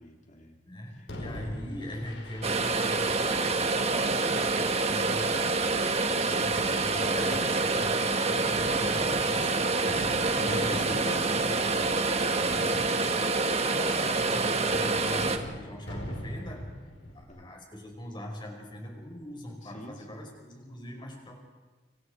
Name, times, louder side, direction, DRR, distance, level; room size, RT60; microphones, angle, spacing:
voice 1, 0.0-0.6 0.9-1.5 8.8-9.2 10.3-11.2 12.7-13.0 17.3-17.5 19.6-20.2, equal, 45° left, 2 dB, 3.5 m, -46 dB
voice 2, 0.6-5.6 6.1-16.8 17.1-21.4, left 1 dB, 25° left, 1 dB, 5.5 m, -41 dB
Fireworks, 1.1-17.2, left 1 dB, 85° left, 4.9 m, -42 dB
sound 1, 2.4-15.4, right 3 dB, 35° right, 1.6 m, -27 dB
30.0 x 26.5 x 5.0 m, 1.3 s
head